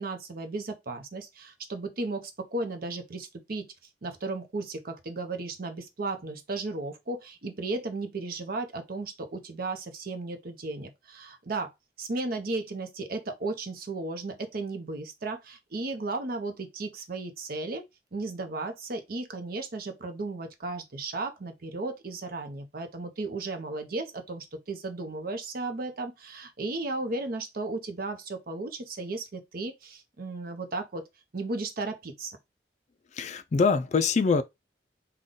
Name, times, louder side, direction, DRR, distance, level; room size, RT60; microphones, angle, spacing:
voice 1, 0.0-3.7 4.0-11.7 12.0-17.8 18.1-31.1 31.3-32.4, right 3 dB, 55° right, 0.7 m, -35 dB
voice 2, 33.1-34.4, left 4 dB, 40° left, 0.4 m, -24 dB
3.8 x 2.2 x 3.6 m
head